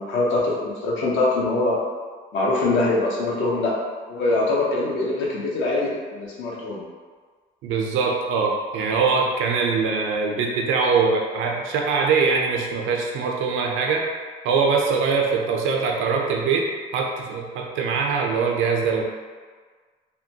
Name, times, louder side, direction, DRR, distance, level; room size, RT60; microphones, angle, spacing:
voice 1, 0.0-1.8 2.3-3.8 4.1-6.8, left 2 dB, 75° left, -4 dB, 0.7 m, -23 dB
voice 2, 7.6-14.1 14.4-19.0, right 5 dB, 85° right, 0 dB, 0.4 m, -22 dB
2.9 x 2.2 x 2.7 m, 1.5 s
cardioid pair, 90°, 20 cm